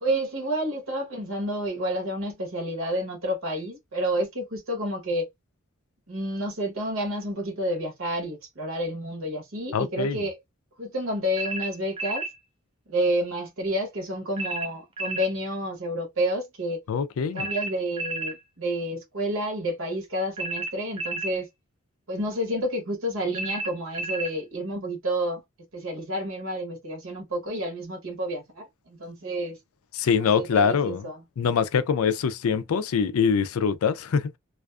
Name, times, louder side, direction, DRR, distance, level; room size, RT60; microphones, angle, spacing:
voice 1, 0.0-5.3 6.1-10.4 10.8-12.3 12.9-16.8 17.3-21.5 22.1-25.4 25.7-29.6 30.2-31.2, equal, 70° right, 0.9 m, -29 dB
voice 2, 9.7-10.3 16.9-17.5 29.9-31.1 31.4-34.4, left 6 dB, 80° left, 0.4 m, -24 dB
sound 1, 11.4-12.3 14.4-15.3 17.4-18.4 20.4-21.4 23.3-24.3, right 2 dB, 25° right, 0.4 m, -32 dB
2.4 x 2.4 x 2.3 m
head